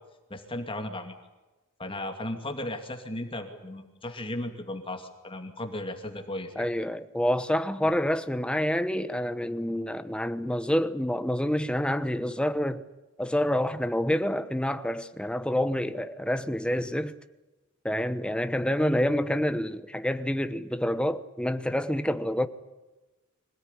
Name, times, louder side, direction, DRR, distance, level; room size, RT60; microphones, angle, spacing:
voice 1, 0.3-1.2 1.8-6.7 7.8-8.0, left 1 dB, 25° left, 2.5 m, -36 dB
voice 2, 6.6-12.8 13.2-17.2 17.8-22.5, equal, 5° left, 1.0 m, -27 dB
25.5 x 18.0 x 10.0 m
head